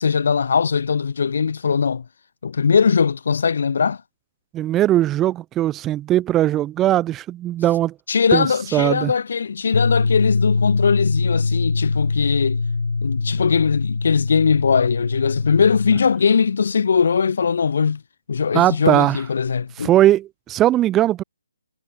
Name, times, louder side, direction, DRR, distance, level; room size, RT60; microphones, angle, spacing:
voice 1, 0.0-2.0 2.4-4.0 8.1-12.6 13.0-18.0 18.3-19.9, left 6 dB, 60° left, 1.3 m, -20 dB
voice 2, 4.5-7.9 8.3-8.5 8.7-9.1 18.5-19.2 19.8-21.2, right 13 dB, 15° right, 0.3 m, -19 dB
sound 1, 9.7-16.0, left 4 dB, 80° left, 1.7 m, -22 dB
figure-of-eight pair, 150°, 0 cm